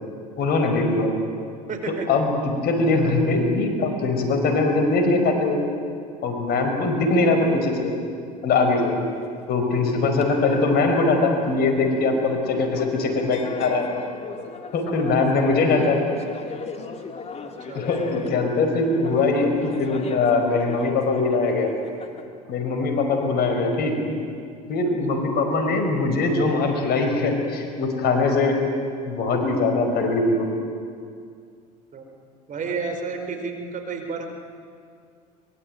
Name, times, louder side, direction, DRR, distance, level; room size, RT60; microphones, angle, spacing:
voice 1, 0.4-1.2 2.1-2.3 2.6-5.6 6.2-7.9 8.4-8.9 9.5-13.9 14.7-16.0 17.7-21.7 22.5-23.9 24.7-28.6 29.1-30.5, left 3 dB, 55° left, 4 dB, 5.2 m, -21 dB
voice 2, 1.7-2.1 8.7-9.0 17.4-17.9 25.1-25.2 31.9-32.1 32.5-34.3, right 4 dB, 40° right, 5 dB, 4.7 m, -31 dB
sound 1, 8.8-22.2, left 4 dB, 35° left, 2.7 m, -37 dB
23.5 x 22.5 x 9.2 m, 2.2 s
hypercardioid pair, 85°, 20 cm